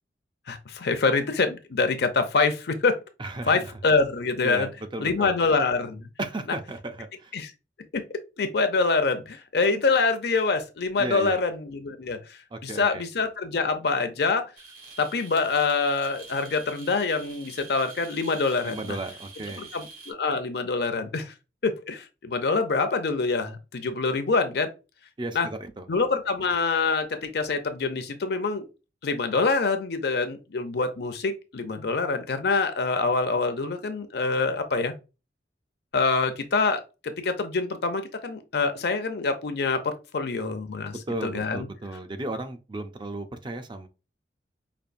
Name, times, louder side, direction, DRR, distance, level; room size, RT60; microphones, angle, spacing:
voice 1, 0.5-2.9 3.5-4.7 5.0-6.1 6.5-6.6 7.3-7.5 7.9-8.0 8.4-14.5 15.0-19.0 19.6-21.3 21.6-24.7 25.3-25.5 25.9-28.7 29.0-34.9 35.9-41.0 41.2-41.7, left 4 dB, 65° left, 0.6 m, -25 dB
voice 2, 3.2-3.7 4.4-5.4 6.2-7.3 11.0-11.4 12.5-13.1 18.6-19.7 25.2-25.9 41.1-43.9, right 2 dB, 25° right, 0.5 m, -35 dB
sound 1, 14.6-20.1, right 4 dB, 55° right, 1.5 m, -46 dB
5.2 x 2.5 x 2.6 m
head